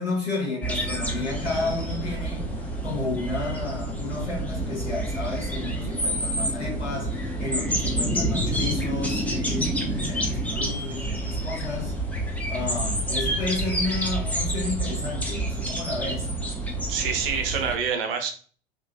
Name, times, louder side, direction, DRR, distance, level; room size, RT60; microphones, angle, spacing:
voice 1, 0.0-2.6 2.8-12.0 12.5-16.3, left 3 dB, 90° left, 1.2 m, -32 dB
sound 1, 0.6-17.8, right 1 dB, 5° left, 0.5 m, -28 dB
voice 2, 16.9-18.3, right 6 dB, 60° right, 0.7 m, -26 dB
2.8 x 2.6 x 2.2 m
figure-of-eight pair, 75°, 32 cm